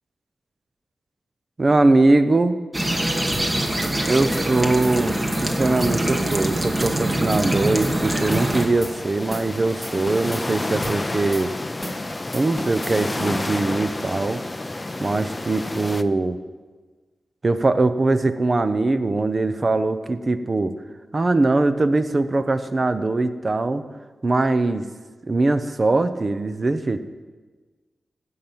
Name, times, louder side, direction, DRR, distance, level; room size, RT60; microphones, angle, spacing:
voice 1, 1.6-2.6 4.1-11.5 12.3-14.4 15.0-16.4 17.4-20.7 21.1-23.8 24.2-24.9 25.3-27.0, right 2 dB, 35° right, 10 dB, 0.8 m, -21 dB
sound 1, 2.7-8.7, right 1 dB, 20° right, 1.3 m, -24 dB
sound 2, 3.3-3.5 3.8-3.9 4.3-4.5 4.8-5.4 5.8-6.0 6.3-6.4 6.8-7.0 7.3-7.9 8.3-8.5 8.8-8.9 9.3-9.5 9.8-10.4 10.8-11.0 11.3-11.4 11.8-12.0 12.3-12.9, equal, ahead, 2.6 m, -33 dB
sound 3, 8.3-16.0, left 2 dB, 20° left, 0.5 m, -30 dB
16.0 x 5.7 x 7.8 m, 1.4 s
wide cardioid pair, 95°, 0 cm